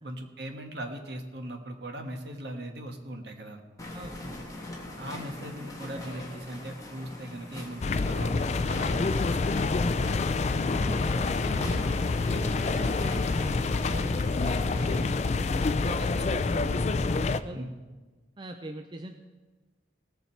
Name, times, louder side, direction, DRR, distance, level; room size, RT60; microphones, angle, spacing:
voice 1, 0.0-3.6 5.0-9.6 17.5-17.8, right 1 dB, 60° right, 4 dB, 1.4 m, -39 dB
sound 1, 3.8-15.0, left 1 dB, 15° left, 1.4 m, -41 dB
voice 2, 3.9-4.3 10.8-17.7 18.4-19.2, right 1 dB, 25° right, 4 dB, 0.5 m, -41 dB
sound 2, 7.8-17.4, left 3 dB, 35° left, 0.3 m, -27 dB
18.0 x 7.0 x 4.5 m, 1.3 s
head